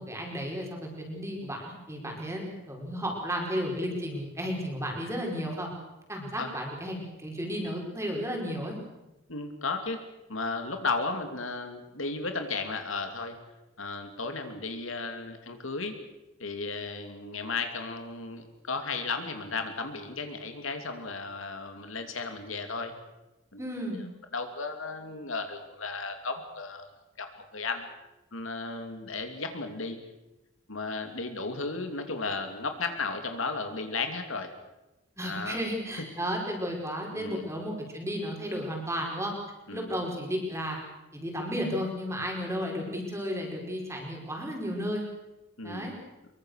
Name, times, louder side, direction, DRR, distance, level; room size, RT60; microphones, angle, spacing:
voice 1, 0.0-5.7 6.1-8.8 23.6-24.0 35.2-39.3 39.7-40.8 41.1-45.0 45.6-45.9, equal, 15° right, 0 dB, 5.0 m, -33 dB
voice 2, 9.3-10.0 10.3-13.4 13.8-16.0 16.4-22.9 23.5-23.7 23.9-24.0 24.3-26.9 27.2-27.3 27.5-27.9 28.3-30.0 30.7-34.5 35.2-35.6 36.0-36.1 37.1-37.5 39.7-39.9 45.6-45.9, left 3 dB, 75° left, 6 dB, 2.9 m, -34 dB
24.0 x 23.0 x 6.6 m, 0.99 s
head